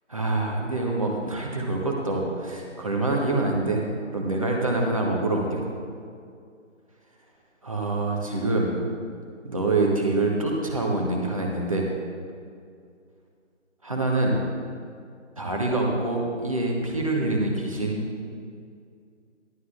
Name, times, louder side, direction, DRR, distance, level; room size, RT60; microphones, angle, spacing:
voice 1, 0.1-3.9 4.1-5.6 7.6-8.8 9.4-11.9 13.8-14.4 15.4-18.0, right 2 dB, 25° right, -1 dB, 1.2 m, -25 dB
15.5 x 11.5 x 2.5 m, 2.3 s
figure-of-eight pair, 165°, 37 cm